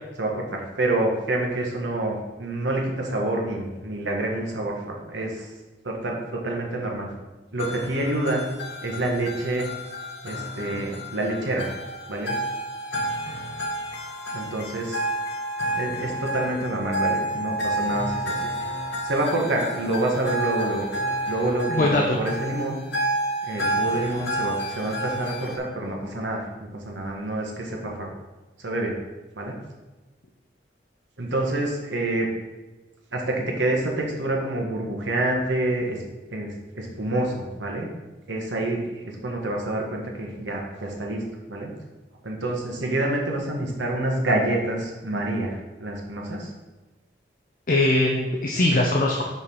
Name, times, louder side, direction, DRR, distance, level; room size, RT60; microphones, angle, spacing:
voice 1, 0.2-5.5 5.8-7.1 7.5-8.5 8.8-9.7 10.2-11.7 12.1-12.4 14.3-15.0 15.7-18.2 19.0-20.9 21.2-22.8 23.4-28.1 28.6-28.9 29.3-29.5 31.2-32.3 33.1-36.0 36.3-37.9 38.3-41.2 41.5-41.7 42.2-46.5, right 1 dB, 80° right, 0 dB, 1.4 m, -27 dB
sound 1, 7.6-25.6, right 1 dB, 70° left, 1.2 m, -30 dB
voice 2, 21.7-22.2 47.7-49.2, left 2 dB, 45° left, -1 dB, 0.7 m, -21 dB
5.3 x 4.8 x 5.5 m, 1.2 s
head